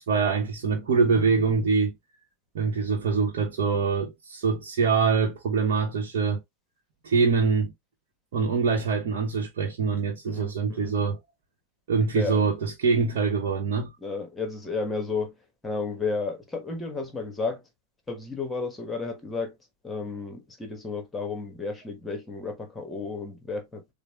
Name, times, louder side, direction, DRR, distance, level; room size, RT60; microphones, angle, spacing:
voice 1, 0.0-1.9 2.5-6.4 7.0-7.7 8.3-11.2 11.9-13.9, right 5 dB, 55° right, 1.0 m, -24 dB
voice 2, 10.3-11.0 12.1-12.5 14.0-17.6 18.1-19.6 19.8-23.9, left 4 dB, 10° left, 1.3 m, -32 dB
6.6 x 2.2 x 3.1 m
figure-of-eight pair, 90°, 0 cm